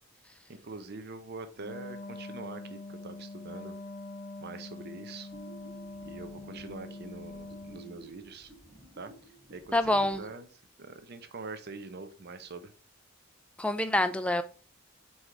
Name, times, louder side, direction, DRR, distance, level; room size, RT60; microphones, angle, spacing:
voice 1, 0.5-3.8 4.4-5.3 6.0-8.5 8.9-9.1 9.5-10.5 10.8-12.7, right 3 dB, 50° right, 0.7 m, -44 dB
Wind instrument woodwind instrument, 1.5-8.0, left 2 dB, 35° left, 0.9 m, -44 dB
sound 1, 5.3-10.4, right 3 dB, 10° right, 1.6 m, -53 dB
voice 2, 9.7-10.2 13.6-14.4, left 1 dB, 5° left, 0.4 m, -26 dB
4.6 x 4.2 x 4.9 m
head